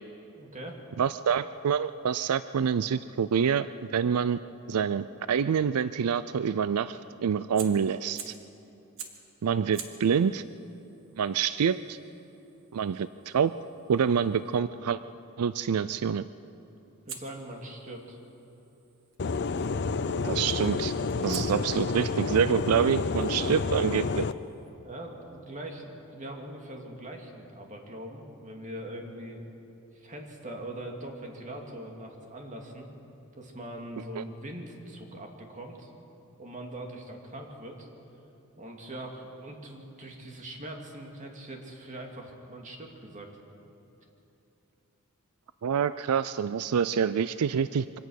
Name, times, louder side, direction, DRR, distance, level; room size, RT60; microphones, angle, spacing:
voice 1, 0.4-0.8 17.1-18.2 23.4-23.5 24.8-29.4 29.9-32.9 33.4-35.9 36.4-37.9 38.6-43.3, right 1 dB, 35° right, 2 dB, 2.5 m, -42 dB
voice 2, 1.0-3.7 3.9-4.4 4.7-8.3 9.4-10.4 11.2-12.0 12.7-13.5 13.9-15.0 15.4-16.2 20.2-20.9 21.2-24.3 34.2-34.3 45.6-48.0, right 7 dB, 85° right, 14 dB, 0.4 m, -26 dB
Fire, 7.5-8.5 9.0-9.3 9.7-14.6 17.1-19.2 20.5-20.8 21.3-24.7, right 7 dB, 60° right, 1.8 m, -48 dB
sound 1, 19.2-24.3, left 4 dB, 50° left, 0.6 m, -29 dB
24.5 x 17.5 x 6.5 m, 2.9 s
head